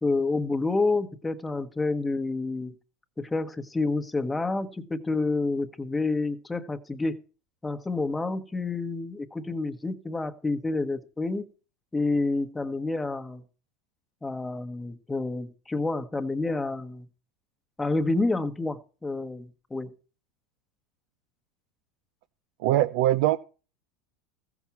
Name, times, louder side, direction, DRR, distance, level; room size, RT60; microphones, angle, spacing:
voice 1, 0.0-2.7 3.2-7.2 7.6-11.4 11.9-13.4 14.2-17.1 17.8-19.9, left 3 dB, 10° left, 1.3 m, -29 dB
voice 2, 22.6-23.4, right 14 dB, 70° right, 0.6 m, -22 dB
14.5 x 6.0 x 7.2 m
supercardioid pair, 110°, 0 cm